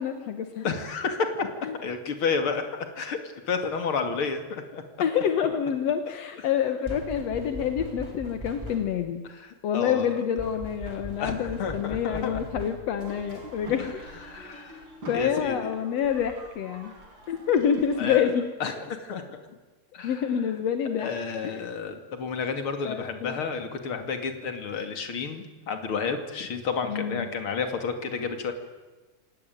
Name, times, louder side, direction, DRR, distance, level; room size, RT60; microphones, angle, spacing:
voice 1, 0.0-0.7 1.6-1.8 5.0-9.2 9.6-14.0 15.1-16.9 17.3-18.4 20.0-21.1 21.4-21.7 22.8-23.4 26.8-27.3, left 8 dB, 60° left, 7 dB, 1.7 m, -27 dB
voice 2, 0.6-1.5 1.8-2.6 2.9-3.2 3.5-4.8 9.3-10.1 11.2-12.4 13.8-13.9 14.3-14.8 15.1-15.7 18.0-18.3 18.6-19.6 19.9-20.2 21.0-28.5, left 5 dB, 35° left, 6 dB, 2.7 m, -31 dB
sound 1, 6.8-9.1 10.4-13.0, equal, 5° right, 3.2 m, -40 dB
sound 2, 13.0-18.2, right 1 dB, 30° right, 5.3 m, -45 dB
28.0 x 18.5 x 9.3 m, 1.2 s
omnidirectional pair, 4.7 m